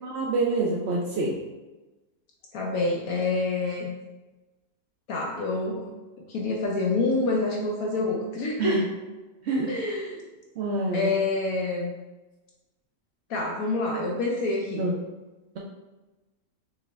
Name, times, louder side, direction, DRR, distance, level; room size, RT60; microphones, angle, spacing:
voice 1, 0.0-1.3 8.6-8.8 9.4-10.0 10.6-11.1 14.8-14.9, right 2 dB, 85° right, -2 dB, 0.5 m, -27 dB
voice 2, 2.5-4.0 5.1-6.0 6.3-8.9 9.7-10.2 10.9-11.9 13.3-14.8, left 3 dB, 70° left, -1 dB, 0.9 m, -27 dB
5.7 x 2.1 x 3.4 m, 1.1 s
omnidirectional pair, 1.7 m